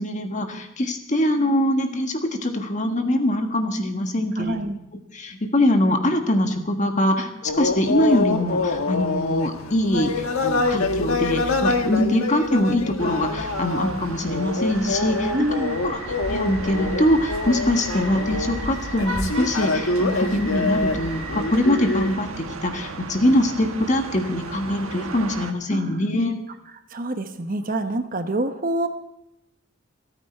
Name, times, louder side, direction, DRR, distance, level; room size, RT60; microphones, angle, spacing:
voice 1, 0.0-4.6 5.1-15.3 15.8-26.4, left 1 dB, 35° left, 5 dB, 1.5 m, -23 dB
voice 2, 4.4-4.8 15.3-15.8 25.7-26.1 26.9-28.9, right 1 dB, 40° right, 8 dB, 1.0 m, -26 dB
sound 1, 7.4-22.1, left 3 dB, 80° left, 1.4 m, -26 dB
sound 2, 13.0-25.5, right 3 dB, 80° right, 1.3 m, -36 dB
sound 3, 14.7-22.1, equal, 5° right, 7.6 m, -36 dB
27.0 x 9.0 x 4.5 m, 0.84 s
head